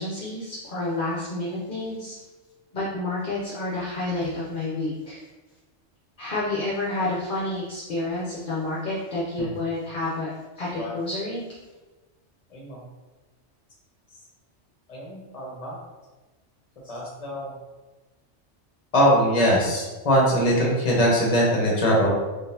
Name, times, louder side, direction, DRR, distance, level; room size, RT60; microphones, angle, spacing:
voice 1, 0.0-2.2 2.7-5.2 6.2-10.3 10.6-11.4, left 2 dB, 50° left, -6 dB, 0.8 m, -29 dB
voice 2, 14.9-15.7 16.9-17.5 18.9-22.1, equal, 35° left, -3 dB, 1.0 m, -22 dB
3.8 x 3.3 x 2.7 m, 1.2 s
omnidirectional pair, 1.2 m